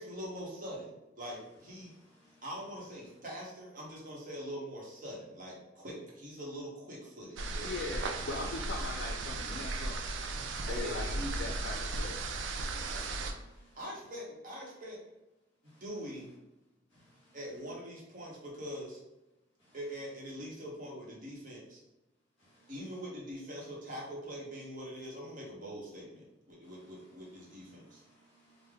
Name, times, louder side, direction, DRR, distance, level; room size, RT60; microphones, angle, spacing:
voice 1, 0.0-1.9 2.4-7.7 10.7-10.9 12.9-13.0 13.7-15.0 15.8-16.3 17.3-19.0 19.7-21.8 22.7-28.0, equal, 45° right, 0.9 m, -43 dB
sound 1, 7.4-13.3, right 2 dB, 70° right, 0.4 m, -36 dB
voice 2, 7.6-10.0 10.6-12.2, left 3 dB, 65° left, 0.4 m, -40 dB
voice 3, 10.3-10.7 12.4-12.9 13.5-13.7 16.9-17.1 19.7-19.8 22.4-22.7 27.7-28.7, right 1 dB, 30° left, 1.4 m, -65 dB
3.3 x 2.0 x 3.5 m
head